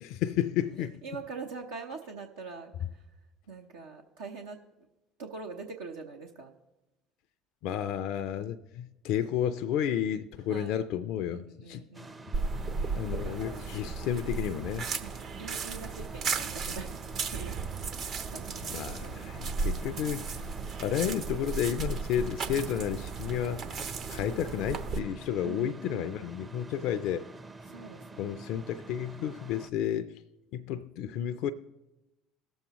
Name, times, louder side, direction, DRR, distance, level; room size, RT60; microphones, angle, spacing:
voice 1, 0.0-1.0 7.6-11.8 12.7-14.9 18.7-20.5 20.8-23.6 24.1-27.3 28.2-30.2 30.5-31.5, left 10 dB, 65° left, 0.4 m, -32 dB
voice 2, 1.0-3.0 3.5-4.6 5.2-6.5 10.5-10.8 11.3-12.3 13.2-13.7 15.0-17.0 17.3-17.6 18.0-19.1 25.4-26.3 27.7-28.5, right 4 dB, 85° right, 0.8 m, -43 dB
sound 1, 11.9-29.7, right 3 dB, 25° right, 0.6 m, -47 dB
sound 2, 12.3-25.0, right 4 dB, 55° right, 0.9 m, -35 dB
18.0 x 7.2 x 3.0 m
hypercardioid pair, 65°, 0 cm